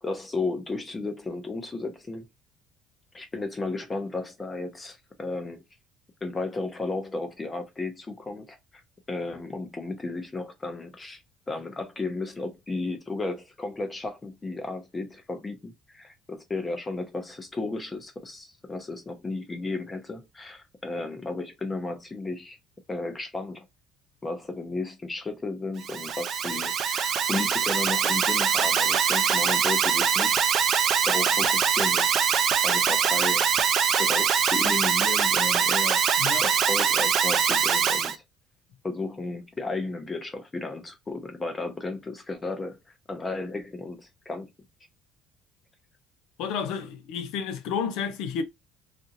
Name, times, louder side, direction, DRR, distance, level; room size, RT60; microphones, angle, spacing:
voice 1, 0.0-2.2 3.1-5.6 6.2-8.6 9.1-11.2 11.5-22.6 22.9-23.6 24.2-30.4 31.0-32.2 32.6-33.5 34.0-38.2 38.8-42.8 43.1-44.5, left 3 dB, 15° left, 0.6 m, -34 dB
Alarm, 25.8-38.2, right 7 dB, 45° right, 0.4 m, -23 dB
voice 2, 46.4-48.4, left 6 dB, 80° left, 0.6 m, -31 dB
2.8 x 2.5 x 2.7 m
cardioid pair, 155°, 0 cm